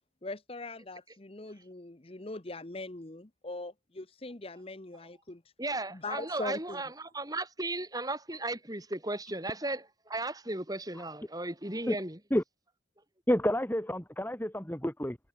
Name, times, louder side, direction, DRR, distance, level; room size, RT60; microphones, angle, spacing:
voice 1, 0.2-5.4 5.9-6.8, left 2 dB, 30° left, 1.0 m, -41 dB
voice 2, 5.6-12.2, right 2 dB, 20° right, 4.2 m, -36 dB
voice 3, 13.3-15.2, equal, 10° left, 1.3 m, -29 dB
head